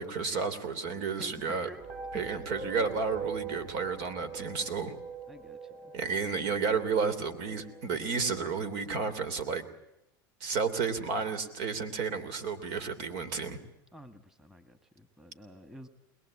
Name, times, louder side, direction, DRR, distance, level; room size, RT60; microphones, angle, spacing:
voice 1, 0.0-1.7 2.1-4.9 5.9-9.7 10.4-13.6, right 5 dB, 65° right, 10 dB, 3.1 m, -32 dB
voice 2, 1.2-1.8 2.1-2.4 5.3-5.6 13.9-15.9, left 1 dB, 5° right, 9 dB, 1.7 m, -49 dB
sound 1, 1.8-9.0, right 5 dB, 45° right, 7.3 m, -43 dB
21.5 x 21.5 x 8.6 m, 0.85 s
supercardioid pair, 115°, 12 cm